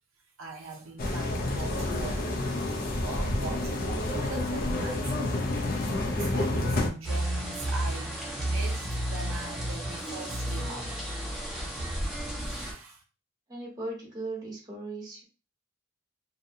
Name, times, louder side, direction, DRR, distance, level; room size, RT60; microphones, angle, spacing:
voice 1, 0.4-5.4 6.0-10.9 12.4-13.0, right 2 dB, 75° right, 0.5 m, -41 dB
sound 1, 1.0-6.9, left 1 dB, 50° left, 0.5 m, -29 dB
sound 2, 7.0-12.7, right 1 dB, ahead, 0.7 m, -32 dB
voice 2, 13.5-15.2, right 2 dB, 20° right, 1.1 m, -37 dB
2.7 x 2.1 x 2.6 m
head